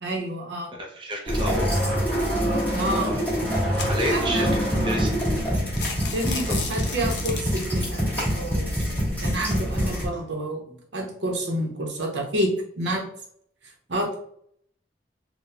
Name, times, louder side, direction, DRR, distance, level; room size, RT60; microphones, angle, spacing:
voice 1, 0.0-0.7 2.7-3.1 4.1-4.6 6.1-8.8 9.2-13.1 13.9-14.1, right 1 dB, 65° right, 0 dB, 0.8 m, -29 dB
voice 2, 0.7-1.8 2.9-3.2 3.9-5.1 6.3-6.6 9.8-10.0, equal, 30° right, -1 dB, 0.6 m, -31 dB
sound 1, 1.3-10.1, equal, 10° left, 1.3 m, -25 dB
sound 2, 2.4-2.7 3.3-4.3 4.8-4.9 5.2-5.4 5.7-7.9, left 5 dB, 65° left, 0.6 m, -34 dB
3.9 x 2.2 x 2.7 m, 0.65 s
head